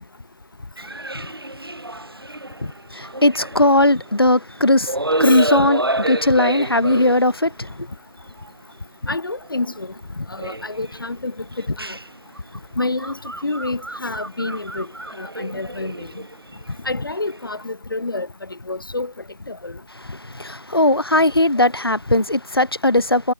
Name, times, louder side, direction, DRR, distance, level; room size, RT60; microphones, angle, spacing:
sound 1, 0.8-4.6 4.9-7.7 8.4-8.5 9.4-9.8 10.4-11.0 11.5-17.6, right 1 dB, 85° right, 2.1 m, -29 dB
voice 1, 3.0-4.9 5.2-7.9 20.1-23.3, left 1 dB, 85° left, 2.0 m, -18 dB
voice 2, 5.2-5.7 6.9-7.1 9.0-12.0 12.8-14.9 15.2-16.2 16.8-19.1 19.5-19.7 21.6-21.7, left 2 dB, 65° left, 1.2 m, -28 dB
figure-of-eight pair, 165°, 12 cm